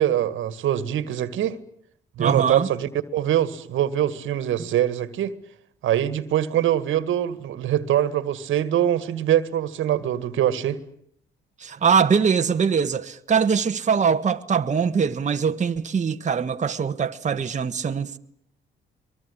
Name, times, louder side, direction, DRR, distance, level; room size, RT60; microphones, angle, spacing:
voice 1, 0.0-1.6 2.2-5.4 5.8-10.8, right 11 dB, 80° right, 2.0 m, -23 dB
voice 2, 2.2-2.7 11.6-18.2, right 6 dB, 35° right, 1.5 m, -22 dB
23.5 x 23.5 x 9.9 m
cardioid pair, 90°, 20 cm